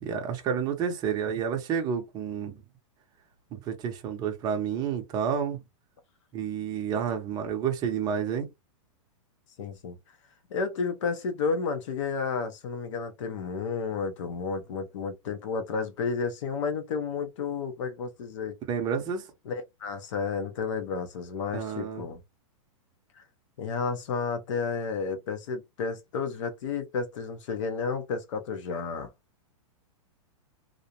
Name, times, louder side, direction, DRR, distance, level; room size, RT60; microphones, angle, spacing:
voice 1, 0.0-2.6 3.5-5.6 6.3-8.5 18.7-19.3 21.5-22.1, right 7 dB, 25° right, 0.6 m, -30 dB
voice 2, 9.6-10.0 10.5-18.5 19.5-22.2 23.6-29.1, left 5 dB, 65° left, 0.6 m, -31 dB
2.5 x 2.0 x 2.8 m
hypercardioid pair, 150°, 17 cm